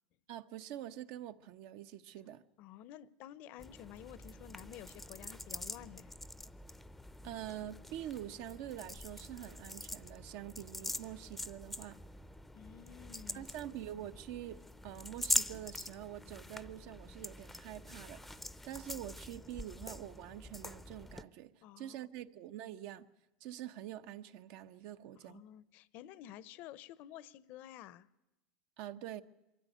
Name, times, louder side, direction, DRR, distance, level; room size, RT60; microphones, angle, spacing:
voice 1, 0.3-2.4 7.2-12.0 13.3-23.1 23.4-25.4 28.8-29.2, right 12 dB, 60° right, 0.9 m, -46 dB
voice 2, 2.6-6.1 12.5-13.5 21.6-22.0 25.2-28.1, left 12 dB, 50° left, 0.7 m, -51 dB
sound 1, 3.6-21.2, left 1 dB, 5° left, 0.6 m, -44 dB
23.5 x 13.5 x 9.3 m
supercardioid pair, 130°, 4 cm